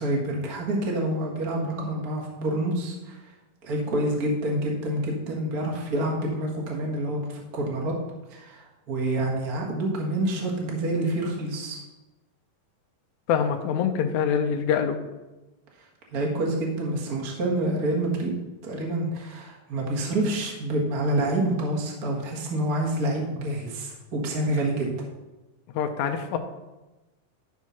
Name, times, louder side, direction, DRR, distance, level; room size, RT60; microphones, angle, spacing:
voice 1, 0.0-3.2 3.6-8.0 8.3-11.8 15.8-15.9 16.1-18.3 18.6-24.9, right 1 dB, 35° right, -2 dB, 1.6 m, -27 dB
voice 2, 13.3-15.0 25.7-26.4, left 7 dB, 75° left, 5 dB, 1.8 m, -25 dB
12.0 x 4.6 x 5.8 m, 1.1 s
omnidirectional pair, 4.0 m